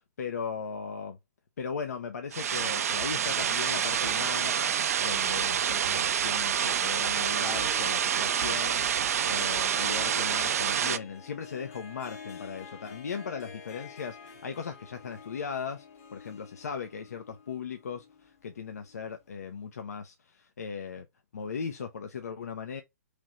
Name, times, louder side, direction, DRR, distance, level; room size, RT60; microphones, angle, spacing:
voice 1, 0.2-1.2 1.6-4.7 5.0-15.8 16.1-21.1 21.3-22.8, left 6 dB, 75° left, 0.7 m, -38 dB
sound 1, 2.3-11.0, right 8 dB, 65° right, 0.4 m, -27 dB
Harp, 7.2-19.1, left 6 dB, 55° left, 1.6 m, -48 dB
3.3 x 3.1 x 3.7 m
hypercardioid pair, 125°, 9 cm